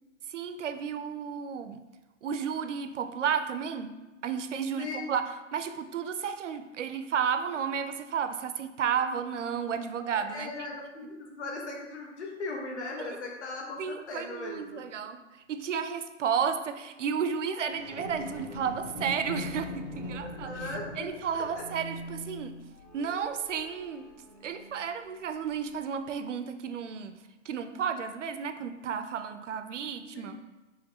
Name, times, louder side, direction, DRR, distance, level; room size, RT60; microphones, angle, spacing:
voice 1, 0.3-1.8 2.2-4.0 4.2-10.5 13.0-13.2 13.8-15.2 15.5-20.5 21.0-22.6 22.9-24.1 24.4-27.2 27.5-30.4, right 7 dB, 70° right, 9 dB, 0.5 m, -32 dB
voice 2, 4.8-5.1 10.1-14.8 20.3-21.6 30.1-30.4, left 3 dB, 60° left, 0 dB, 1.1 m, -39 dB
sound 1, 17.6-25.1 25.7-25.8, left 1 dB, 35° left, 0.6 m, -41 dB
4.9 x 3.0 x 2.8 m, 1.1 s
hypercardioid pair, 180°, 38 cm